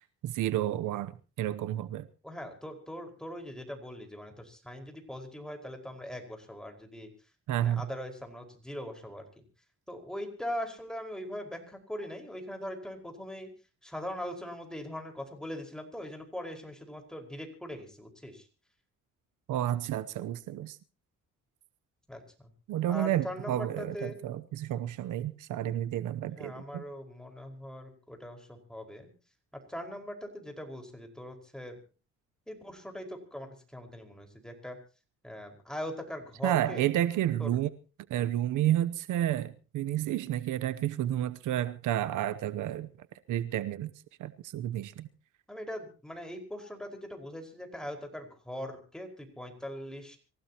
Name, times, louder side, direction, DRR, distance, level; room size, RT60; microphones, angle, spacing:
voice 1, 0.2-1.1 1.4-2.1 7.5-7.8 19.5-20.8 22.7-26.8 36.4-37.7 38.1-42.9 43.3-43.9 44.2-45.1, right 12 dB, 80° right, 0.9 m, -30 dB
voice 2, 2.2-7.1 7.5-9.2 9.9-13.5 13.8-18.5 22.1-22.5 22.9-24.2 24.9-25.0 25.5-25.6 26.2-29.1 29.7-31.8 32.5-34.8 35.2-36.9 37.4-37.5 45.5-50.2, equal, ahead, 5.0 m, -41 dB
26.0 x 16.0 x 3.0 m
cardioid pair, 90°, 30 cm